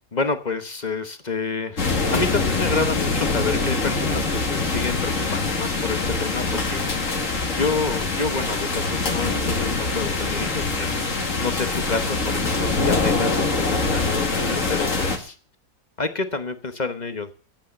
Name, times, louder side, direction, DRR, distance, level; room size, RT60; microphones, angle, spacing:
voice 1, 0.1-15.4 16.0-17.3, left 4 dB, 30° left, 10 dB, 1.1 m, -29 dB
sound 1, 1.8-15.2, left 3 dB, 55° left, 2.4 m, -24 dB
12.0 x 8.6 x 8.8 m, 0.41 s
omnidirectional pair, 1.6 m